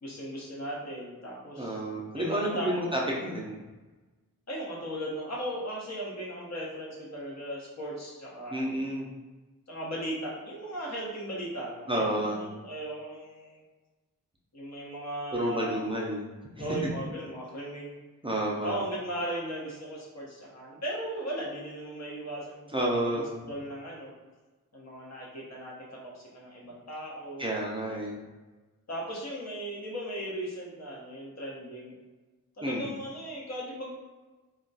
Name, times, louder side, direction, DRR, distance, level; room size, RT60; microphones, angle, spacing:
voice 1, 0.0-1.8 2.1-2.9 4.5-8.8 9.7-13.6 14.5-15.8 16.6-18.0 18.6-22.8 23.1-24.1 24.7-27.5 28.9-31.9 32.6-33.9, right 1 dB, 50° left, -4 dB, 0.9 m, -37 dB
voice 2, 1.6-3.6 8.5-9.1 11.9-12.5 15.3-16.9 18.2-18.8 22.7-23.4 27.4-28.2 32.6-32.9, right 1 dB, 15° right, -4 dB, 0.4 m, -30 dB
2.3 x 2.2 x 3.9 m, 1.2 s
wide cardioid pair, 130°, 34 cm